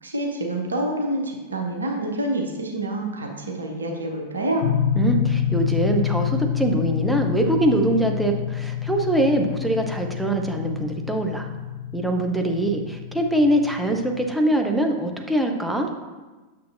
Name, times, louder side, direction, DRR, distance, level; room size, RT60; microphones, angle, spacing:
voice 1, 0.0-4.7, right 1 dB, 75° right, 2 dB, 0.9 m, -27 dB
sound 1, 4.6-14.3, left 9 dB, 60° left, 0.4 m, -27 dB
voice 2, 5.0-11.5 11.9-15.9, right 1 dB, 5° right, 2 dB, 0.7 m, -23 dB
6.9 x 6.5 x 2.6 m, 1.3 s
figure-of-eight pair, 90°, 0 cm